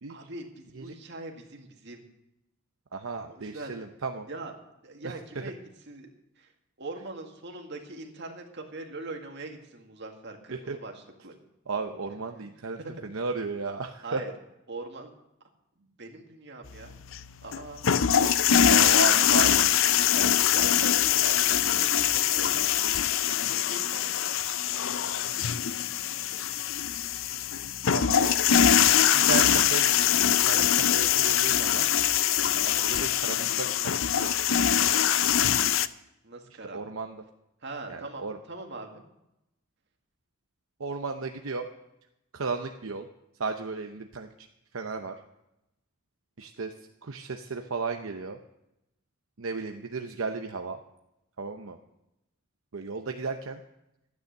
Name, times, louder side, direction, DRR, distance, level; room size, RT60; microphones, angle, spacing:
voice 1, 0.1-2.0 3.3-3.7 4.3-4.5 4.8-5.6 5.9-6.1 6.4-6.5 6.8-11.3 12.4-12.5 12.8-12.9 14.0-14.3 14.7-15.1 15.8-17.0 17.4-18.0 18.6-18.9 20.1-22.9 23.5-24.3 28.1-28.8 36.2-36.9 37.6-39.0, right 2 dB, 60° right, 2 dB, 2.0 m, -42 dB
voice 2, 2.9-4.3 5.0-5.5 10.5-10.8 11.7-14.2 18.7-19.7 27.9-28.2 29.1-31.9 32.7-34.8 36.7-37.2 37.9-38.4 40.8-41.7 42.3-43.1 43.4-44.3 44.7-45.1 46.4-46.7 47.0-48.4 49.4-50.8 51.4-51.8 52.7-53.6, right 4 dB, 80° right, 5 dB, 0.8 m, -34 dB
sound 1, 16.7-35.9, left 9 dB, 70° left, 0.5 m, -23 dB
13.0 x 9.6 x 6.5 m, 0.88 s
head